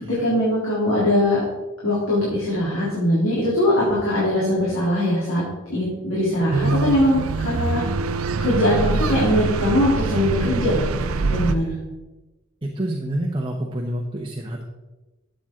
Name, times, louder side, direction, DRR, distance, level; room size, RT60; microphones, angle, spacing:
voice 1, 0.2-1.4 1.8-5.4 5.7-7.8 8.4-10.8 11.3-11.7, left 1 dB, 70° left, -8 dB, 3.3 m, -21 dB
sound 1, 6.5-11.5, right 3 dB, 90° right, 0.6 m, -24 dB
voice 2, 11.2-11.7 12.6-14.6, right 1 dB, 25° right, 0 dB, 1.0 m, -28 dB
12.0 x 7.9 x 3.8 m, 1.1 s
head